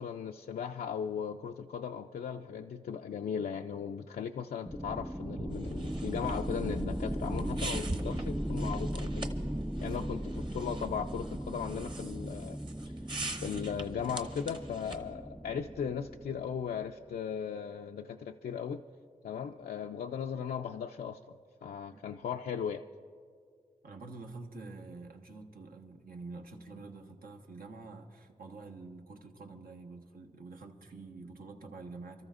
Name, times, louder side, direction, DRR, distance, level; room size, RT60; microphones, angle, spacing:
voice 1, 0.0-9.3 9.8-10.2 10.5-12.6 13.4-18.8 19.2-21.2 21.6-22.8, left 7 dB, 85° left, 3 dB, 0.4 m, -37 dB
sound 1, 4.7-16.9, equal, ahead, 0.4 m, -37 dB
sound 2, 5.4-8.2, right 2 dB, 70° right, 3.0 m, -50 dB
sound 3, 5.5-15.1, right 2 dB, 30° right, 0.9 m, -44 dB
voice 2, 9.7-10.1 21.9-22.0 23.8-32.3, right 3 dB, 90° right, 2 dB, 1.2 m, -47 dB
29.0 x 13.5 x 2.5 m, 2.1 s
wide cardioid pair, 100°, 15 cm